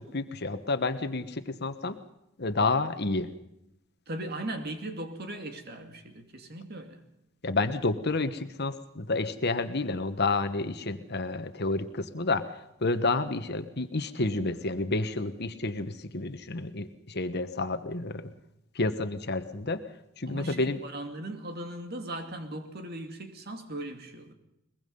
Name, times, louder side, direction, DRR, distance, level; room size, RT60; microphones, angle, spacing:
voice 1, 0.0-2.0 2.4-3.3 7.4-12.5 12.8-18.3 18.7-19.8 20.2-20.8, left 3 dB, 55° left, 10 dB, 1.3 m, -30 dB
voice 2, 4.1-7.0 20.3-24.3, right 1 dB, 50° right, 6 dB, 2.5 m, -38 dB
22.5 x 22.0 x 5.5 m, 0.83 s
head